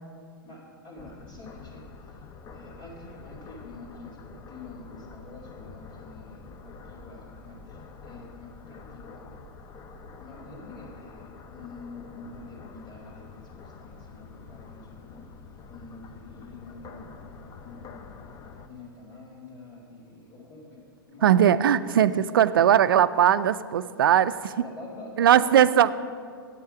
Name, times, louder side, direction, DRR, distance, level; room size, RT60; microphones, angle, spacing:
voice 1, 0.4-2.2 2.5-9.4 10.2-15.2 15.7-18.1 18.6-22.3 24.6-25.9, left 2 dB, 55° left, -7 dB, 2.4 m, -47 dB
sound 1, 1.0-18.7, left 4 dB, 30° left, 0.6 m, -46 dB
voice 2, 21.2-24.5 25.2-25.9, right 10 dB, 70° right, 15 dB, 0.4 m, -19 dB
8.8 x 8.4 x 5.0 m, 2.2 s
hypercardioid pair, 105°, 12 cm